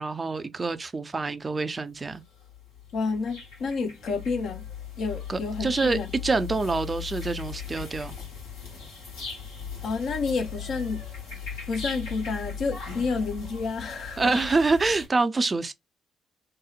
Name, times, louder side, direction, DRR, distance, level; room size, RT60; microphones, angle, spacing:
voice 1, 0.0-2.2 5.3-8.1 14.2-15.7, right 3 dB, 35° right, 0.4 m, -26 dB
sound 1, 2.2-15.1, left 6 dB, 80° left, 1.1 m, -38 dB
voice 2, 2.9-4.6 5.0-6.1 9.8-11.0 11.7-14.3, left 4 dB, 60° left, 0.6 m, -30 dB
2.8 x 2.0 x 2.3 m
hypercardioid pair, 45°, 0 cm